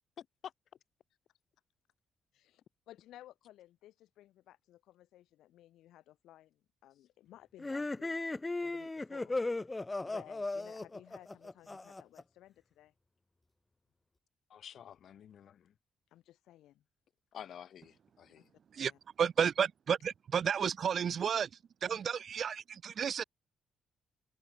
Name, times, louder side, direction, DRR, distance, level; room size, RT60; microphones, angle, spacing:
voice 1, 0.2-0.5 14.5-15.7 17.3-18.5, left 9 dB, 65° left, 2.7 m, -50 dB
voice 2, 2.3-12.9 16.1-16.8 18.4-18.5 18.8-19.0, left 13 dB, 85° left, 5.8 m, -58 dB
sound 1, 7.6-12.2, left 2 dB, 20° left, 0.6 m, -37 dB
voice 3, 19.2-21.5 21.8-23.2, right 7 dB, 55° right, 0.6 m, -32 dB
cardioid pair, 85°, 0 cm